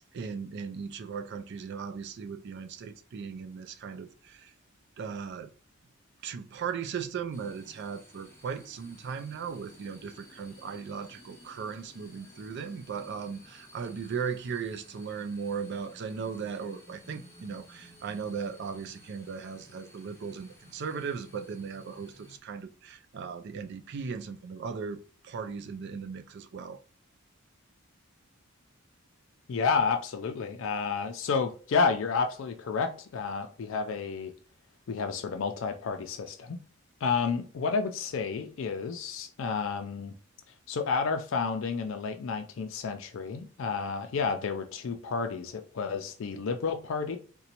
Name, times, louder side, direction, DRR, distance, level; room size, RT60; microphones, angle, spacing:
voice 1, 0.1-4.5 5.0-5.5 6.2-26.8, right 6 dB, 55° right, 0.4 m, -37 dB
sound 1, 7.3-22.4, equal, 15° left, 0.7 m, -55 dB
voice 2, 29.5-34.3 34.9-36.6 37.0-40.1 40.7-47.2, left 5 dB, 65° left, 0.4 m, -30 dB
3.9 x 2.2 x 2.8 m
head